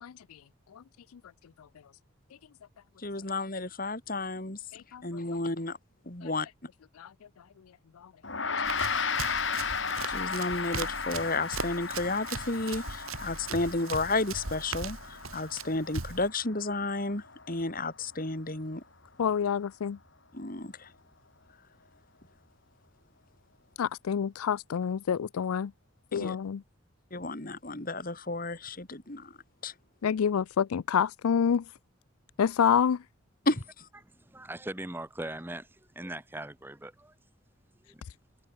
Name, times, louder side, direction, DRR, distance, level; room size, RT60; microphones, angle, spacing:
voice 1, 0.0-0.4 0.7-0.8 4.7-5.0 6.2-6.3 7.0-7.1 8.0-8.1 8.9-9.0 10.0-10.1 19.2-20.0 23.8-25.7 26.1-26.6 30.0-31.6 32.4-33.0, left 7 dB, 90° left, 0.4 m, -28 dB
voice 2, 3.0-4.6 5.0-5.8 6.1-6.5 10.1-18.8 20.3-20.9 26.1-26.4 27.1-29.4 29.6-29.7 33.5-33.9, left 2 dB, 40° left, 2.3 m, -32 dB
Gong, 8.2-17.9, left 5 dB, 60° left, 3.9 m, -35 dB
Run, 8.6-16.3, right 4 dB, 75° right, 2.2 m, -39 dB
voice 3, 34.0-37.1 37.9-38.0, right 1 dB, 10° right, 1.0 m, -40 dB
head